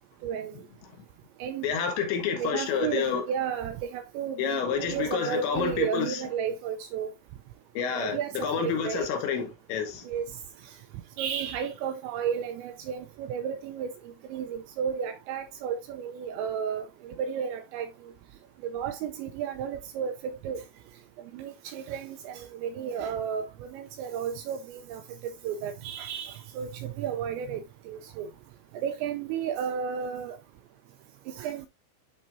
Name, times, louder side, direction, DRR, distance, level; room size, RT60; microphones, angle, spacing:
voice 1, 0.2-0.5 1.4-1.7 2.4-7.1 7.9-9.1 10.1-10.3 11.2-13.9 14.3-17.9 18.6-20.6 21.3-28.3 28.8-30.4 31.3-31.7, right 8 dB, 85° right, 2.6 m, -33 dB
voice 2, 1.6-3.2 4.4-6.2 7.7-10.1, left 7 dB, 75° left, 3.3 m, -29 dB
10.5 x 4.3 x 2.6 m
omnidirectional pair, 5.7 m